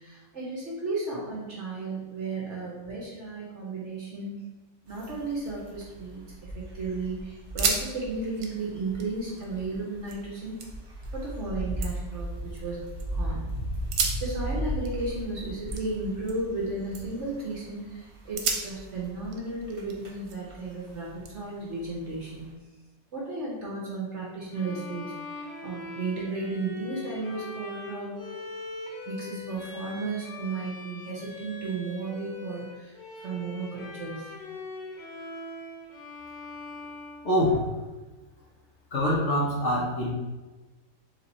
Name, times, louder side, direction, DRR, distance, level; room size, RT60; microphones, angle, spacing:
voice 1, 0.0-4.3 4.8-10.6 11.1-13.5 14.2-22.5 23.1-25.1 25.6-28.2 29.1-32.9 33.2-34.3, right 3 dB, 50° right, -4 dB, 1.0 m, -34 dB
sound 1, 4.9-22.5, equal, 20° right, 0.8 m, -38 dB
sound 2, 5.8-6.6 6.9-7.0 7.4-7.9 8.2-10.2 10.6-11.1 11.5-13.1 13.8-16.6 16.9-17.3 17.8-17.9 18.4-20.6 21.3-22.4, right 5 dB, 75° right, 1.2 m, -35 dB
Bowed string instrument, 24.5-38.0, left 3 dB, 85° left, 1.5 m, -42 dB
voice 2, 37.2-37.7 38.9-40.1, left 1 dB, 50° left, -6 dB, 0.9 m, -25 dB
3.6 x 2.9 x 4.0 m, 1.2 s
omnidirectional pair, 1.8 m